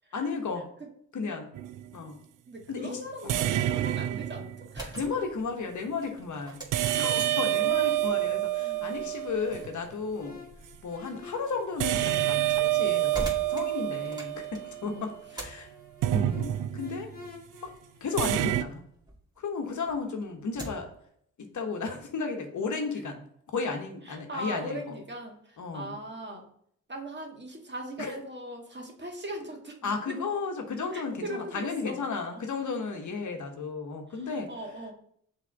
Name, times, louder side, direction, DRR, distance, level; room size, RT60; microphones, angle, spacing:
voice 1, 0.1-0.7 1.1-1.5 1.9-2.2 2.7-3.5 4.9-6.6 7.0-10.4 10.8-15.7 16.1-17.1 17.6-17.7 18.0-18.8 19.4-20.9 21.4-23.2 23.5-25.0 25.6-25.9 28.0-28.2 29.8-34.5, left 4 dB, 50° left, 4 dB, 1.2 m, -34 dB
sound 1, 1.5-1.9 3.3-4.8 6.7-9.7 11.8-15.2 16.0-17.1 18.2-18.6, right 13 dB, 55° right, 0.5 m, -28 dB
voice 2, 2.5-5.0 7.4-8.2 8.6-9.1 14.8-15.1 24.0-26.5 26.9-30.2 30.9-32.0 32.3-32.4 34.1-34.2 34.5-34.9, right 1 dB, 30° right, 1 dB, 1.7 m, -40 dB
sound 2, 4.6-19.2 19.6-21.0, right 1 dB, 10° right, 2.1 m, -45 dB
sound 3, 8.0-18.7, left 3 dB, 25° left, 1.8 m, -52 dB
5.8 x 3.4 x 4.7 m, 0.67 s
hypercardioid pair, 45°, 38 cm